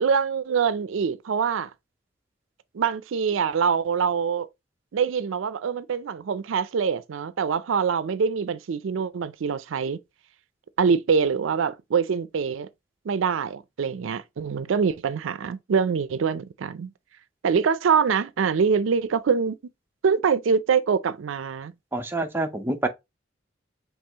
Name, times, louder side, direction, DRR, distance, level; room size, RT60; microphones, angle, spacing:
voice 1, 0.0-1.7 2.7-4.5 4.9-10.0 10.8-12.7 13.1-16.9 17.4-19.6 20.0-21.7, right 6 dB, 85° right, 0.4 m, -24 dB
voice 2, 21.9-22.9, right 2 dB, 10° right, 0.5 m, -27 dB
5.4 x 3.0 x 2.8 m
head